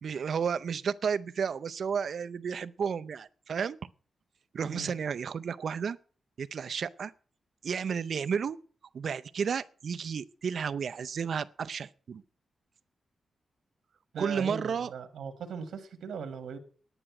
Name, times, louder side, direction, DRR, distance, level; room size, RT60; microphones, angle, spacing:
voice 1, 0.0-3.8 4.5-6.0 6.4-7.1 7.6-8.6 8.9-12.2 14.2-14.9, right 6 dB, 60° right, 0.5 m, -32 dB
voice 2, 14.1-16.6, right 6 dB, 90° right, 1.5 m, -39 dB
9.9 x 9.9 x 5.9 m
wide cardioid pair, 145°, 0 cm